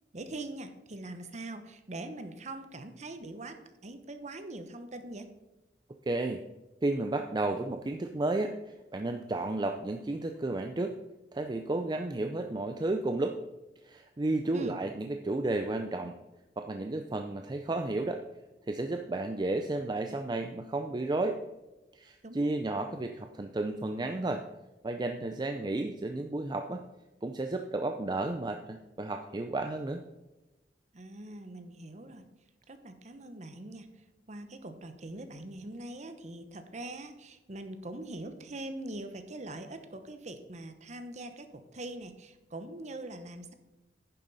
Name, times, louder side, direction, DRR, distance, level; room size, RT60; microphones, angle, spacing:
voice 1, 0.1-5.3 14.4-14.8 22.2-22.5 30.9-32.2 32.7-43.5, right 2 dB, 40° right, 8 dB, 0.9 m, -43 dB
voice 2, 6.1-6.4 6.8-8.6 8.9-10.9 11.3-13.4 13.8-16.2 16.6-18.2 18.7-21.4 21.9-24.4 24.8-26.8 27.2-30.0, right 2 dB, 25° right, 6 dB, 0.5 m, -32 dB
10.0 x 7.1 x 4.1 m, 1.1 s
head